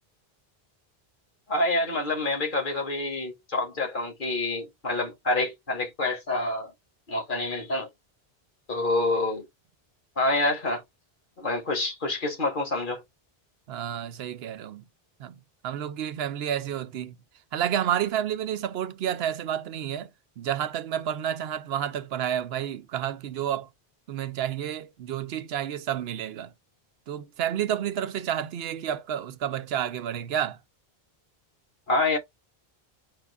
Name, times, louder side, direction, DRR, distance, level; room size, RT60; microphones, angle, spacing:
voice 1, 1.5-6.7 7.1-7.9 8.7-9.5 10.2-10.8 11.4-13.0 31.9-32.2, left 2 dB, 55° left, 1.4 m, -27 dB
voice 2, 13.7-14.8 15.2-17.2 17.5-20.1 20.4-23.7 24.1-26.5 27.1-30.6, right 10 dB, 80° right, 0.8 m, -30 dB
4.7 x 2.3 x 3.3 m
omnidirectional pair, 1.0 m